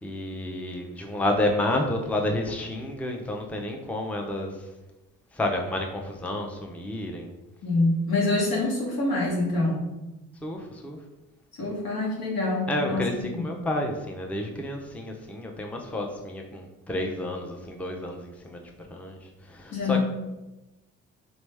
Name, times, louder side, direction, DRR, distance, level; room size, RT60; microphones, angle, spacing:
voice 1, 0.0-4.7 5.3-7.3 10.4-11.0 12.7-18.6 18.9-20.0, left 1 dB, 5° left, 2 dB, 0.6 m, -30 dB
voice 2, 7.6-9.9 11.6-13.4 19.7-20.0, left 2 dB, 65° left, -3 dB, 1.5 m, -26 dB
3.5 x 3.1 x 3.3 m, 1.0 s
hypercardioid pair, 50°, 39 cm